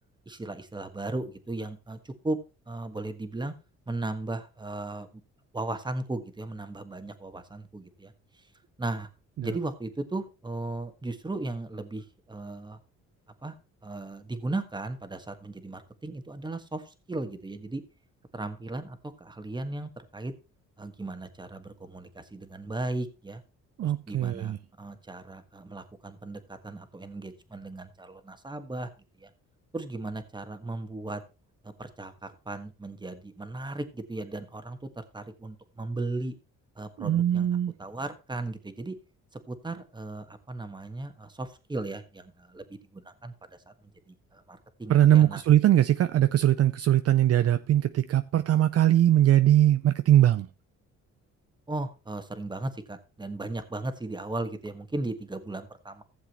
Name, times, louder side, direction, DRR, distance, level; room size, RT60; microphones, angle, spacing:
voice 1, 0.3-2.4 2.7-3.5 3.9-5.1 5.5-8.1 8.8-9.1 9.4-12.8 13.4-13.5 13.8-17.8 18.3-20.3 20.8-23.4 23.8-28.9 29.2-29.3 29.7-31.2 31.6-36.3 36.8-37.5 37.8-39.0 39.3-43.3 44.1-45.4 51.7-56.0, right 2 dB, 15° right, 1.5 m, -36 dB
voice 2, 23.8-24.6 37.0-37.7 44.9-50.5, right 12 dB, 55° right, 0.5 m, -21 dB
15.0 x 7.3 x 3.0 m
cardioid pair, 90°, 30 cm